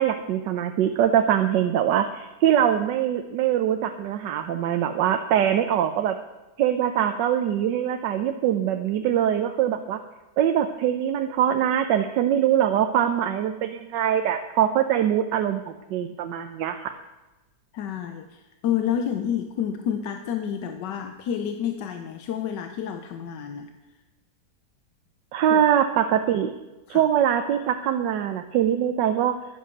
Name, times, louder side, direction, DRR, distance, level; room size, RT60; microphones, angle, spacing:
voice 1, 0.0-6.1 6.6-10.0 10.4-17.0 25.3-26.5 26.9-29.3, right 10 dB, 85° right, 7 dB, 1.4 m, -23 dB
voice 2, 17.7-23.7 25.5-25.6 26.9-27.0, left 9 dB, 85° left, 7 dB, 1.4 m, -29 dB
11.0 x 10.0 x 6.6 m, 1.1 s
omnidirectional pair, 1.9 m